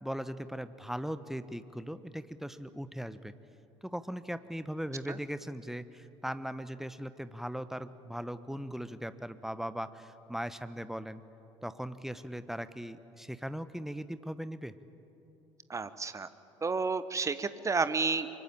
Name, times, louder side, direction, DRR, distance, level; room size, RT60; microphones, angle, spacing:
voice 1, 0.0-3.3 3.8-11.2 11.6-14.7, equal, ahead, 13 dB, 1.0 m, -39 dB
voice 2, 15.7-16.3 16.6-18.4, right 4 dB, 20° right, 13 dB, 1.2 m, -31 dB
24.0 x 22.5 x 8.8 m, 2.9 s
figure-of-eight pair, 60°, 15 cm